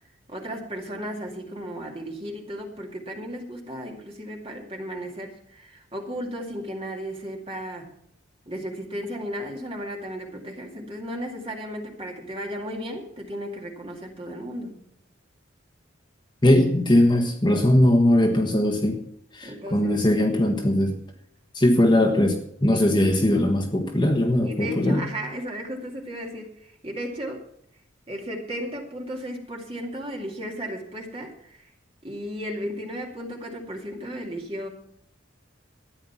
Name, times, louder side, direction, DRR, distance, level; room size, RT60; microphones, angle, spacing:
voice 1, 0.3-7.9 8.5-14.8 19.4-20.0 22.7-22.8 23.2-23.3 24.4-27.5 28.1-31.7 32.0-34.7, equal, 30° right, 0 dB, 2.3 m, -35 dB
voice 2, 16.4-19.0 19.3-21.0 21.5-25.1, left 1 dB, 20° left, 2 dB, 1.4 m, -20 dB
13.5 x 9.6 x 5.9 m, 0.71 s
head